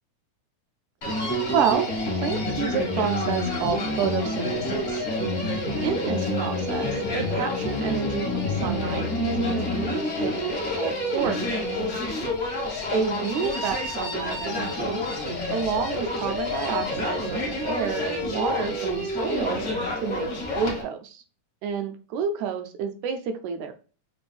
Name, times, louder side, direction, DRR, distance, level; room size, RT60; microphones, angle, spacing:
Human voice, 1.0-20.8, left 1 dB, 50° left, 0.8 m, -28 dB
voice 1, 1.5-1.9 2.2-5.1 5.8-11.6 12.9-15.0 15.5-19.6 20.0-20.3 20.5-21.2 21.6-23.7, right 7 dB, 80° right, 7 dB, 1.9 m, -29 dB
Wind instrument woodwind instrument, 5.7-12.3, left 7 dB, 80° left, 1.6 m, -39 dB
5.9 x 2.5 x 3.4 m, 0.36 s
omnidirectional pair, 3.6 m